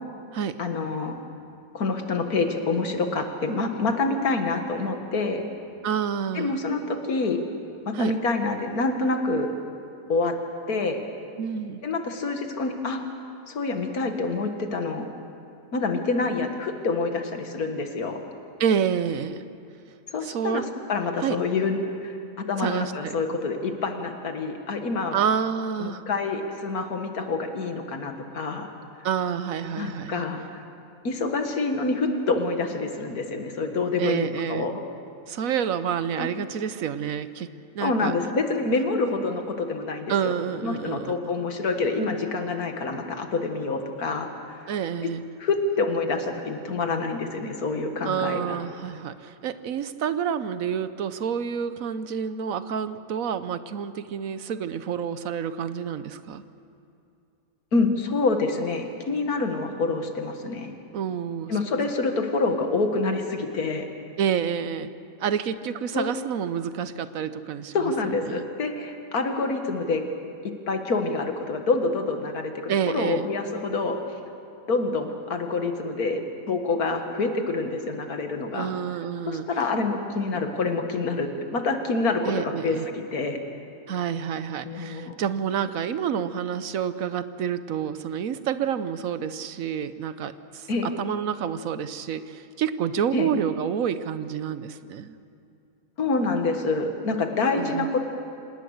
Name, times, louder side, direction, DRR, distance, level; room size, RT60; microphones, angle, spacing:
voice 1, 0.6-1.1 1.7-5.4 6.3-7.4 7.9-9.5 10.1-10.4 10.7-11.0 11.8-13.0 13.5-15.1 15.7-18.2 20.1-25.2 25.8-28.7 29.8-30.4 31.0-34.8 36.2-36.3 37.8-40.3 40.6-44.3 45.4-48.6 57.7-60.7 61.5-63.9 65.9-66.1 67.7-70.1 70.7-74.0 74.7-78.7 79.3-83.4 84.6-85.1 90.7-90.9 93.1-93.3 96.0-98.0, left 3 dB, 80° left, 5 dB, 2.1 m, -27 dB
voice 2, 5.8-6.6 7.9-8.1 11.4-11.8 18.6-19.4 20.2-20.6 21.2-21.4 22.6-23.2 25.1-26.0 29.0-30.2 34.0-34.7 35.3-38.1 40.1-41.2 44.7-45.2 48.0-56.4 60.9-61.5 64.2-64.9 65.2-67.9 68.3-68.5 72.7-73.3 78.5-79.5 82.3-82.9 83.9-95.2 97.5-97.9, right 8 dB, 70° right, 13 dB, 1.1 m, -28 dB
27.0 x 18.5 x 6.6 m, 2.5 s
omnidirectional pair, 1.6 m